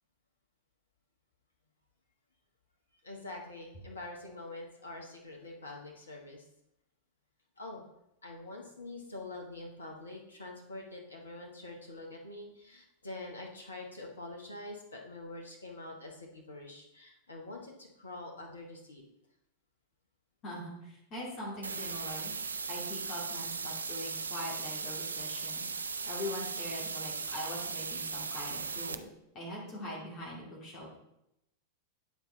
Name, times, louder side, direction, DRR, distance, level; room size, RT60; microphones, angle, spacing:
voice 1, 3.0-6.5 7.6-7.8 8.2-19.0, left 2 dB, 75° left, 0 dB, 1.1 m, -45 dB
voice 2, 20.4-22.3 22.7-25.6 26.1-29.1 29.3-30.9, left 1 dB, 30° left, -5 dB, 2.3 m, -42 dB
sound 1, 21.6-28.9, right 4 dB, 75° right, 0.4 m, -37 dB
9.5 x 4.4 x 3.8 m, 0.82 s
figure-of-eight pair, 90°, 0 cm